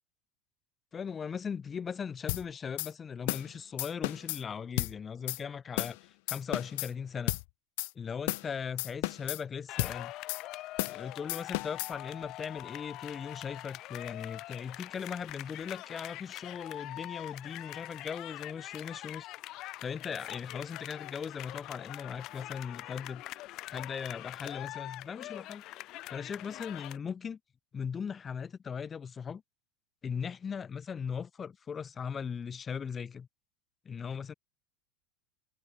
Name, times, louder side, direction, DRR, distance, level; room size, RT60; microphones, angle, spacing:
voice 1, 0.9-7.3 8.0-10.1 10.9-19.3 19.8-23.2 23.7-25.6 26.1-27.4 27.7-29.4 30.0-33.3 33.9-34.3, left 6 dB, 25° left, 5.5 m, -39 dB
sound 1, 2.3-2.4 2.8-2.9 3.3-3.5 3.8-4.4 4.8-4.9 5.3-5.4 5.8-6.0 6.3-6.9 7.3-7.4 7.8-7.9 8.3-8.5 8.8-9.4 9.8-10.0 10.3-10.4 10.8-11.0 11.3-11.9, left 25 dB, 70° left, 0.4 m, -33 dB
sound 2, 9.7-27.0, left 17 dB, 50° left, 3.1 m, -44 dB
supercardioid pair, 115°, 0 cm